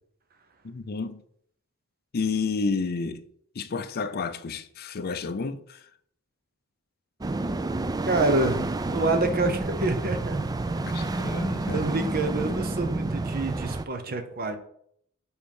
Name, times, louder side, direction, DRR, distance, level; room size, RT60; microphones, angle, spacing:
voice 1, 0.6-1.2 2.1-3.2 3.6-5.8 10.9-11.9, left 4 dB, 45° left, 0.5 m, -30 dB
sound 1, 7.2-13.8, right 2 dB, 20° right, 0.3 m, -29 dB
voice 2, 8.1-8.6 8.9-10.4 10.8-11.4 11.7-14.6, right 2 dB, 45° right, 0.8 m, -27 dB
7.4 x 4.4 x 5.4 m
head